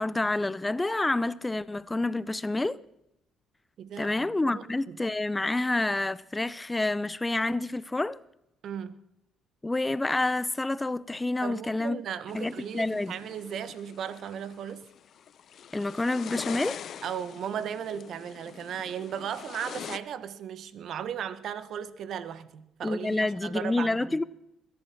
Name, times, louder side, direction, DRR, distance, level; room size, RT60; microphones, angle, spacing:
voice 1, 0.0-2.8 4.0-8.2 9.6-12.0 12.3-13.2 15.7-16.8 22.8-24.2, left 2 dB, 15° left, 0.5 m, -28 dB
voice 2, 3.8-5.0 8.6-9.0 11.4-14.8 17.0-24.2, right 8 dB, 60° right, 1.2 m, -36 dB
sound 1, 12.3-20.0, left 9 dB, 60° left, 0.7 m, -44 dB
21.0 x 11.0 x 5.9 m
supercardioid pair, 75°, 0 cm